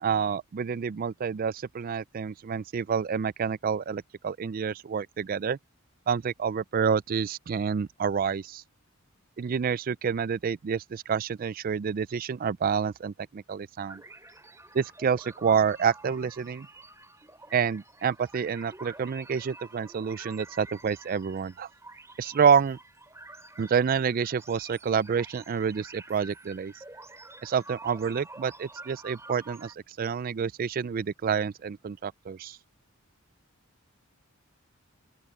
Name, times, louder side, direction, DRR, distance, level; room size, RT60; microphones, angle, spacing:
voice 1, 0.0-5.6 6.1-8.6 9.4-14.0 14.7-16.7 17.5-21.7 22.2-22.8 23.6-26.7 27.4-32.6, right 6 dB, 40° right, 0.3 m, -28 dB
sound 1, 13.8-29.7, right 2 dB, 15° right, 3.4 m, -48 dB
open air
head